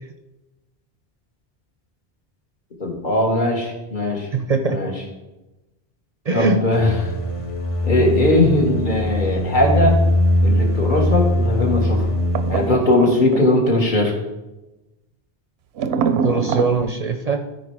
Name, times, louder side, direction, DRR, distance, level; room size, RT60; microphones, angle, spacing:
voice 1, 2.8-4.3 4.7-4.9 6.3-7.1 7.8-10.0 10.4-12.1 12.5-14.1, left 1 dB, 50° left, 1 dB, 1.7 m, -19 dB
voice 2, 4.3-4.8 6.3-6.6 16.2-17.4, right 3 dB, 45° right, 5 dB, 0.6 m, -21 dB
sound 1, 6.7-12.7, left 1 dB, 35° left, 0.7 m, -21 dB
sound 2, 12.3-13.8 15.8-16.7, right 6 dB, 90° right, 0.9 m, -24 dB
13.5 x 4.6 x 4.7 m, 1.0 s
omnidirectional pair, 1.0 m